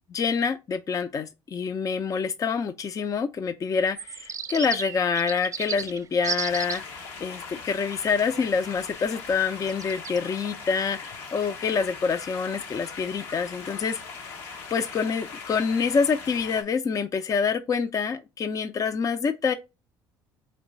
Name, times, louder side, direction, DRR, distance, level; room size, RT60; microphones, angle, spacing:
voice 1, 0.1-14.0 14.7-19.5, left 5 dB, 35° left, 0.5 m, -26 dB
sound 1, 4.0-6.8 9.7-10.2, right 6 dB, 35° right, 0.6 m, -33 dB
sound 2, 6.5-16.6, left 5 dB, 80° left, 1.4 m, -40 dB
4.5 x 3.0 x 3.9 m
supercardioid pair, 75°, 10 cm